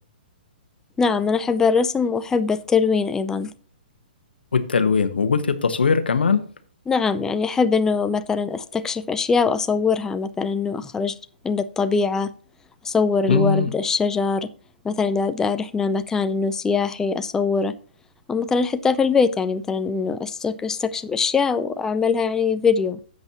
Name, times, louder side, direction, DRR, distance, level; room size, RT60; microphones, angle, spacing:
voice 1, 1.0-3.5 6.9-11.1 11.4-12.3 12.8-14.5 14.8-17.7 18.3-23.0, left 5 dB, 10° left, 0.5 m, -22 dB
voice 2, 4.5-6.4 13.3-13.7, left 5 dB, 90° left, 1.2 m, -20 dB
13.0 x 8.0 x 2.9 m
hypercardioid pair, 140°, 5 cm